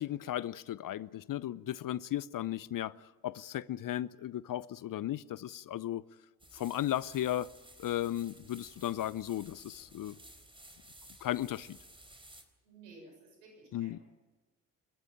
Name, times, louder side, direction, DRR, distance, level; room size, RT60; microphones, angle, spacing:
voice 1, 0.0-6.0 6.5-7.5 7.8-10.2 11.2-11.8 13.7-14.0, left 12 dB, 45° left, 0.7 m, -35 dB
sound 1, 6.4-12.4, right 1 dB, 10° right, 4.2 m, -56 dB
voice 2, 12.6-14.0, right 3 dB, 85° right, 7.1 m, -55 dB
29.0 x 13.5 x 8.9 m
hypercardioid pair, 50°, 45 cm